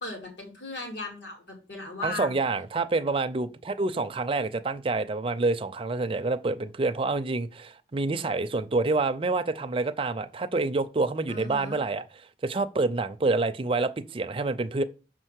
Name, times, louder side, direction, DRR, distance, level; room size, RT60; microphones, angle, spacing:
voice 1, 0.0-2.5 11.3-11.8, left 2 dB, 80° left, 2.5 m, -37 dB
voice 2, 2.0-14.8, right 3 dB, 30° right, 0.5 m, -27 dB
6.2 x 4.4 x 6.3 m
head